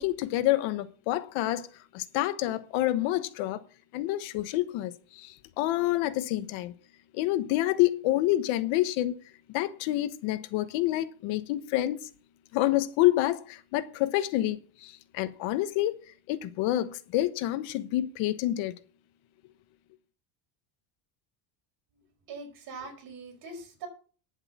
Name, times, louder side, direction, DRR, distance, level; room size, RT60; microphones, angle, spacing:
voice 1, 0.0-1.7 1.9-3.6 3.9-6.7 7.1-9.2 9.5-12.1 12.5-16.0 16.3-18.7, left 15 dB, 75° left, 1.2 m, -28 dB
voice 2, 22.3-23.9, right 4 dB, 50° right, 5.1 m, -42 dB
10.5 x 8.0 x 7.3 m
cardioid pair, 170°, 48 cm